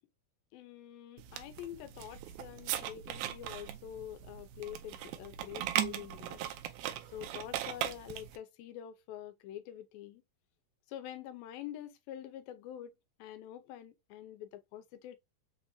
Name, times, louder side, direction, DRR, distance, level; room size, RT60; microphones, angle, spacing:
voice 1, 0.5-6.4 7.1-10.2 10.9-12.9 13.2-15.2, left 11 dB, 90° left, 2.5 m, -46 dB
sound 1, 1.2-8.4, right 12 dB, 85° right, 2.4 m, -39 dB
6.3 x 2.7 x 2.3 m
omnidirectional pair, 4.1 m